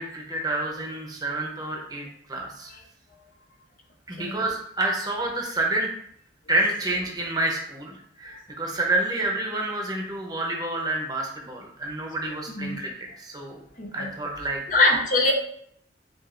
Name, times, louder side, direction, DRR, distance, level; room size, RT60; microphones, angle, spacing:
voice 1, 0.0-2.7 4.1-5.9 6.5-13.6 13.9-14.6, right 2 dB, 20° right, 0 dB, 0.8 m, -28 dB
voice 2, 13.8-14.1 14.7-15.3, left 2 dB, 45° left, 2 dB, 0.7 m, -23 dB
7.7 x 2.6 x 2.6 m, 0.68 s
head